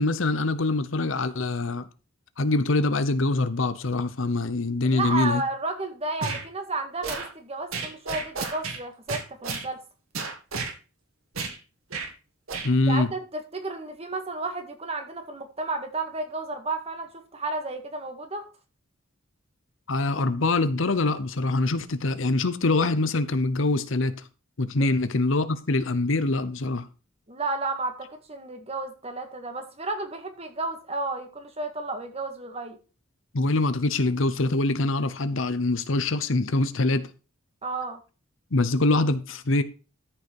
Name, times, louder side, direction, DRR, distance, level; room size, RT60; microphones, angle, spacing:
voice 1, 0.0-1.8 2.4-5.4 12.6-13.1 19.9-24.1 24.6-26.9 33.3-37.1 38.5-39.6, left 2 dB, 65° left, 0.9 m, -24 dB
voice 2, 4.8-9.8 12.9-18.5 24.8-24.9 27.3-32.8 37.6-38.0, right 2 dB, 30° right, 1.8 m, -32 dB
sound 1, 6.2-6.4 7.0-7.3 7.7-8.8 9.1-9.7 10.1-10.7 11.4-11.6 11.9-12.1 12.5-12.7, right 4 dB, 90° right, 2.5 m, -32 dB
13.5 x 5.7 x 4.6 m
head